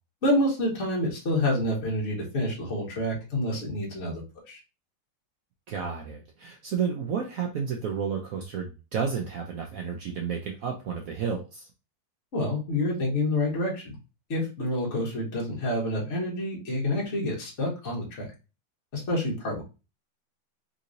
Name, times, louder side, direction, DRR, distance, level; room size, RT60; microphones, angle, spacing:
voice 1, 0.2-4.2 4.5-4.6 12.3-14.0 14.3-18.3 18.9-19.6, left 1 dB, 40° left, 1.4 m, -28 dB
voice 2, 5.7-11.7, right 6 dB, 80° right, 0.7 m, -31 dB
3.7 x 2.9 x 2.5 m
omnidirectional pair, 2.2 m